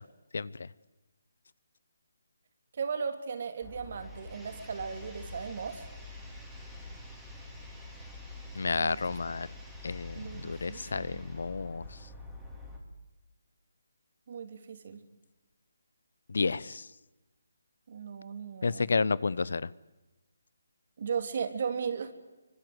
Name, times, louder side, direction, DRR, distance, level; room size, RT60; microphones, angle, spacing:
voice 1, 0.3-0.7 8.5-9.5 9.8-11.9 16.3-16.9 18.6-19.7, left 4 dB, 70° left, 22 dB, 0.8 m, -31 dB
voice 2, 2.8-5.9 8.8-9.0 10.1-11.3 14.3-15.0 17.9-18.9 21.0-22.1, right 6 dB, 45° right, 8 dB, 3.1 m, -36 dB
sound 1, 3.6-12.8, left 2 dB, ahead, 3.9 m, -46 dB
25.0 x 24.5 x 8.0 m, 1.1 s
hypercardioid pair, 165°, 0 cm